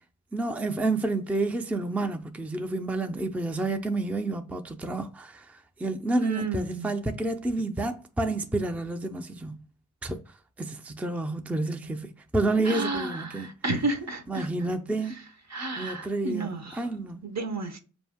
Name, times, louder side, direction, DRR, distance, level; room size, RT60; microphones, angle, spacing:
voice 1, 0.3-9.6 10.0-10.2 10.6-13.5 14.3-15.2 15.8-17.2, right 2 dB, 5° right, 0.4 m, -29 dB
voice 2, 6.2-6.9 12.6-14.5 15.5-16.8 17.2-17.8, right 2 dB, 60° right, 0.8 m, -31 dB
4.4 x 2.6 x 3.5 m
cardioid pair, 50°, 31 cm